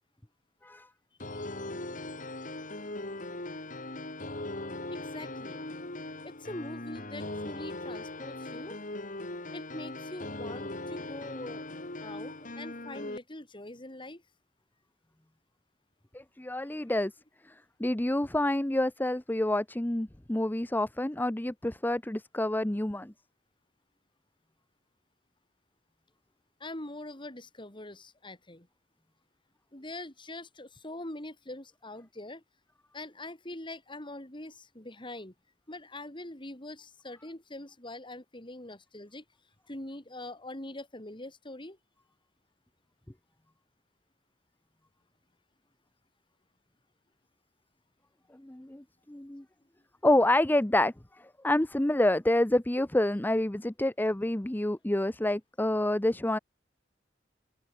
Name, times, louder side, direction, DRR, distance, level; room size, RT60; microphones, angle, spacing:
sound 1, 1.2-13.2, left 2 dB, 45° left, 3.7 m, -39 dB
voice 1, 4.9-5.7 6.2-8.8 9.5-11.6 12.0-14.2 26.6-28.7 29.7-32.4 32.9-35.3 35.7-39.2 39.7-41.8, left 1 dB, 25° left, 3.9 m, -43 dB
voice 2, 16.1-17.1 17.8-23.1 48.4-49.4 50.0-50.9 51.4-56.4, left 1 dB, 10° left, 0.7 m, -28 dB
head